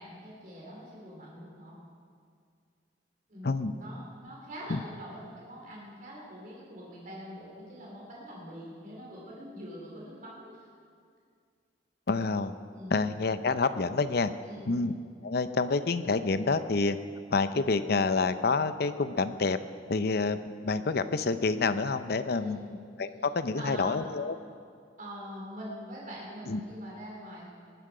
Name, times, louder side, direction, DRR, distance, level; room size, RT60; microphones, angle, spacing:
voice 1, 0.0-1.8 3.3-10.7 12.7-13.0 14.5-14.8 22.3-22.8 23.6-24.1 25.0-27.5, equal, 50° right, -4 dB, 3.6 m, -44 dB
voice 2, 3.4-3.8 4.7-4.8 12.1-12.5 12.9-14.3 14.7-14.9 15.2-17.0 17.3-19.6 19.9-20.4 20.6-22.6 23.0-24.4 26.5-26.6, left 4 dB, 60° left, 11 dB, 0.6 m, -28 dB
20.0 x 11.5 x 4.9 m, 2.2 s
head